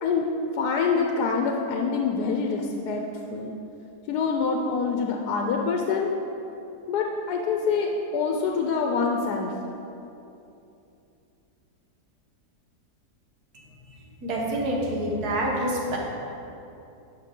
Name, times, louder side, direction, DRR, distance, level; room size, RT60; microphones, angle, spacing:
voice 1, 0.0-3.1 3.3-3.5 4.1-6.1 6.9-9.5, left 5 dB, 80° left, 2 dB, 1.2 m, -25 dB
voice 2, 14.2-16.0, right 1 dB, 70° right, -2 dB, 1.7 m, -27 dB
9.6 x 5.8 x 3.7 m, 2.8 s
omnidirectional pair, 1.7 m